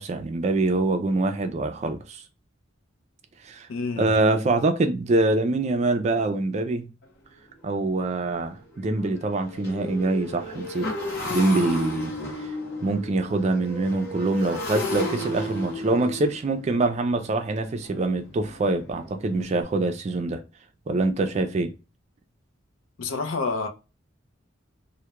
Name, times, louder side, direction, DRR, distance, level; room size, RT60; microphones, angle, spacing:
voice 1, 0.0-2.2 3.5-3.7 4.0-6.9 7.6-10.9 11.3-12.1 12.8-20.4 20.9-21.7, right 2 dB, 35° right, 0.3 m, -24 dB
voice 2, 3.7-4.2 23.0-23.7, left 4 dB, 85° left, 0.5 m, -28 dB
Motorcycle, 7.0-7.1 7.6-7.8 8.0-19.6, left 1 dB, 55° left, 0.9 m, -34 dB
2.2 x 2.1 x 2.8 m
head